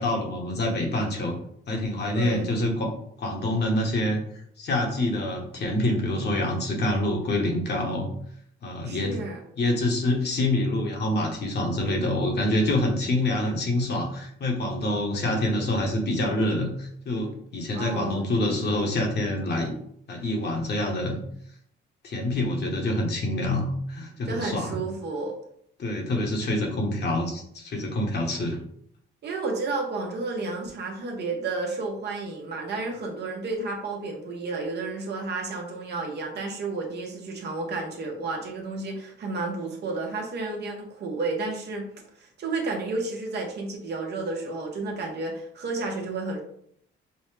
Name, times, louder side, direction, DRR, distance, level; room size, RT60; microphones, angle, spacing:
voice 1, 0.0-1.3 1.7-2.9 3.2-4.2 4.6-8.1 8.6-9.2 9.6-19.7 20.1-21.2 22.0-24.8 25.8-28.6, left 1 dB, 55° left, 1 dB, 1.2 m, -26 dB
voice 2, 2.1-2.5 8.8-9.4 17.7-18.3 24.3-25.3 29.2-41.9 42.2-46.4, right 3 dB, 55° right, 2 dB, 1.0 m, -31 dB
5.4 x 2.1 x 3.2 m, 0.68 s
cardioid pair, 90°, 20 cm